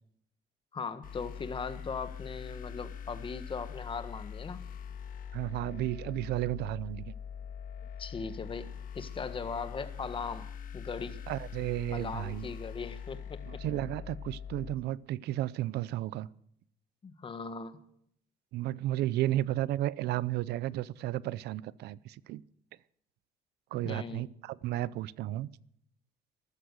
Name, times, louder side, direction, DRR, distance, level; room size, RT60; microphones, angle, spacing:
voice 1, 0.7-4.6 8.0-11.2 11.9-13.6 17.0-17.8 23.8-24.3, left 5 dB, 30° left, 1.6 m, -39 dB
sound 1, 1.0-14.7, left 7 dB, 55° left, 1.6 m, -43 dB
voice 2, 5.3-7.1 11.3-12.5 13.4-16.3 18.5-22.4 23.7-25.5, right 14 dB, 75° right, 0.6 m, -33 dB
14.0 x 13.5 x 6.4 m
cardioid pair, 110°, 17 cm